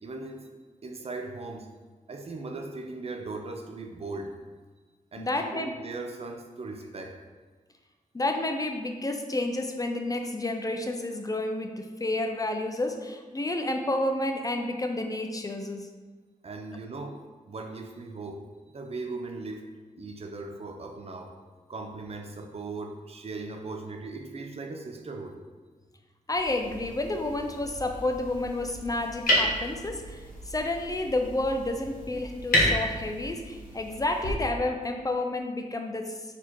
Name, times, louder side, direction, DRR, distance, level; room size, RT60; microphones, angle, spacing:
voice 1, 0.0-0.5 0.8-1.7 2.1-4.3 5.1-7.2 16.4-17.2 17.5-18.4 18.7-19.7 20.0-21.3 21.7-25.4, right 3 dB, 45° right, 4 dB, 0.5 m, -38 dB
voice 2, 5.2-5.7 8.1-15.9 26.3-30.2 30.5-36.2, left 2 dB, 25° left, 4 dB, 0.4 m, -30 dB
sound 1, 26.3-34.3, equal, 85° left, 1.2 m, -31 dB
4.2 x 2.8 x 4.6 m, 1.3 s
wide cardioid pair, 85°, 14 cm